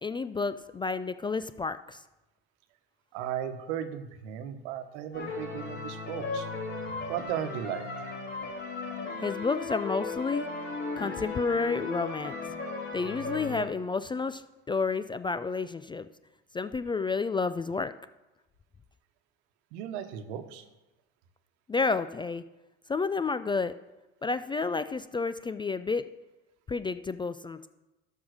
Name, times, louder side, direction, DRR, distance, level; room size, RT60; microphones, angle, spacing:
voice 1, 0.0-2.0 9.2-10.5 11.0-12.3 12.9-14.4 14.7-16.1 16.5-17.9 21.7-22.4 22.9-23.7 24.2-26.0 26.7-27.7, left 4 dB, 15° left, 13 dB, 0.3 m, -30 dB
voice 2, 3.1-6.5 7.1-8.1 19.7-20.6, right 10 dB, 75° right, 9 dB, 1.1 m, -36 dB
sound 1, 5.1-13.7, left 3 dB, 35° left, 3.7 m, -36 dB
12.5 x 5.6 x 6.3 m, 1.0 s
supercardioid pair, 90°, 33 cm